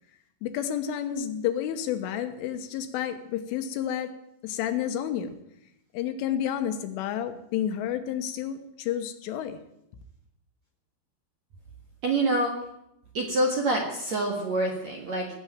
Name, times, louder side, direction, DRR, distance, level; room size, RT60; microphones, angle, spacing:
voice 1, 0.4-4.1 4.4-5.4 5.9-9.6, left 10 dB, 80° left, 8 dB, 3.5 m, -30 dB
voice 2, 12.0-12.5 13.1-15.3, right 2 dB, 50° right, 0 dB, 2.1 m, -26 dB
18.5 x 7.9 x 9.0 m, 0.80 s
omnidirectional pair, 5.7 m